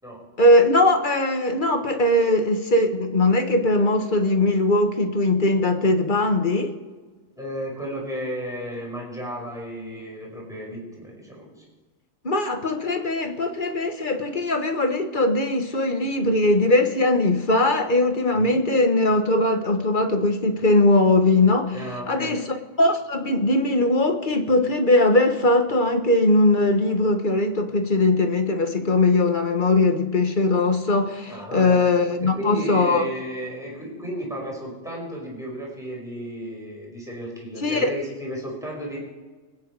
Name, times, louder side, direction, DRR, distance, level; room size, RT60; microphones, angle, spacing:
voice 1, 0.4-6.7 12.2-21.7 22.1-33.0 37.6-37.9, left 2 dB, 40° left, 6 dB, 1.5 m, -20 dB
voice 2, 7.3-11.6 18.3-18.6 21.7-22.4 31.2-31.8 32.2-39.0, equal, ahead, -3 dB, 5.4 m, -33 dB
25.5 x 9.5 x 4.8 m, 1.3 s
omnidirectional pair, 1.4 m